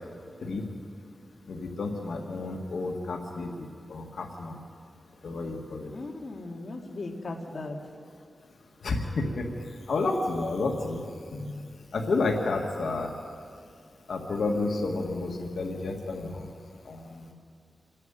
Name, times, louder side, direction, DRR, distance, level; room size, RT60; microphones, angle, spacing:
voice 1, 1.5-4.6 5.2-5.9 8.8-9.5 9.9-11.0 11.3-11.6 11.9-13.1 14.1-16.5 16.9-17.3, left 3 dB, 80° left, 2 dB, 1.8 m, -30 dB
voice 2, 5.9-7.8, left 2 dB, 50° left, 0 dB, 2.2 m, -37 dB
27.5 x 11.0 x 9.1 m, 2.3 s
wide cardioid pair, 115°, 0 cm